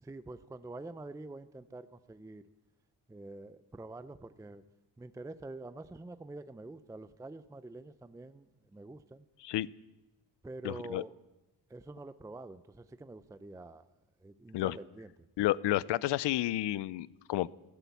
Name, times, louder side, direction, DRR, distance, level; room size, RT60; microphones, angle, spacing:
voice 1, 0.0-2.4 3.1-4.6 5.0-9.2 10.4-11.1 11.7-13.9 14.2-15.1, right 2 dB, 10° right, 12 dB, 0.5 m, -46 dB
voice 2, 10.6-11.0 14.5-14.8 15.4-17.5, left 15 dB, 80° left, 21 dB, 0.6 m, -31 dB
14.5 x 11.5 x 8.2 m, 1.0 s
cardioid pair, 100°, 41 cm